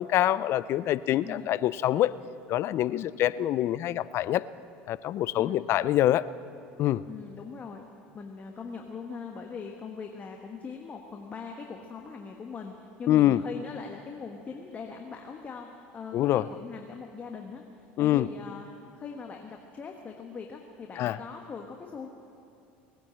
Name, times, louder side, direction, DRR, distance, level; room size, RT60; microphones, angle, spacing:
voice 1, 0.0-2.1 2.5-4.4 4.9-6.2 6.8-7.0 13.1-13.4 16.1-16.4 18.0-18.3 21.0-21.2, left 13 dB, 55° left, 17 dB, 0.4 m, -25 dB
voice 2, 1.2-1.6 5.4-5.7 7.1-7.8 8.1-15.7 15.9-17.6 18.0-18.7 19.0-22.1, left 5 dB, 30° left, 2 dB, 1.3 m, -41 dB
18.5 x 10.0 x 7.6 m, 2.7 s
supercardioid pair, 90°, 5 cm